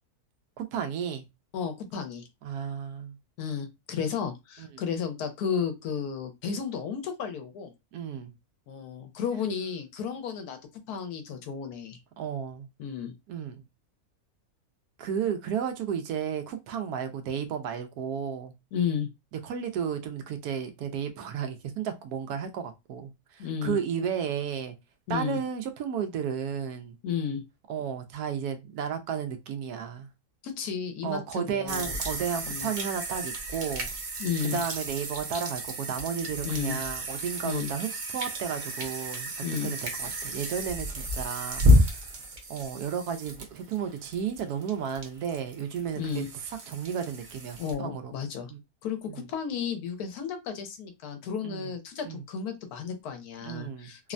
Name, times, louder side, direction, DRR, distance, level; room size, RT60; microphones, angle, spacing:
voice 1, 0.6-1.2 2.4-3.2 4.6-4.8 7.9-8.3 12.2-12.7 13.3-13.6 15.0-18.5 19.4-24.8 25.1-27.0 27.7-30.1 31.0-33.9 34.5-39.3 39.6-42.1 42.5-46.2 46.7-48.1 48.5-48.6 49.1-49.3 51.4-51.7 52.0-52.2 53.4-53.9, right 7 dB, 85° right, 1.1 m, -33 dB
voice 2, 1.5-2.2 3.4-7.7 8.7-10.6 10.9-12.0 12.8-13.1 18.7-19.1 23.4-23.8 25.1-25.4 27.0-27.4 30.4-32.0 32.4-32.7 34.2-34.6 36.4-36.8 37.4-37.7 39.4-39.7 45.9-46.3 47.6-48.5 48.8-54.1, left 7 dB, 80° left, 1.2 m, -33 dB
sound 1, 31.7-47.7, equal, 55° right, 0.5 m, -30 dB
3.2 x 2.1 x 2.5 m
omnidirectional pair, 1.6 m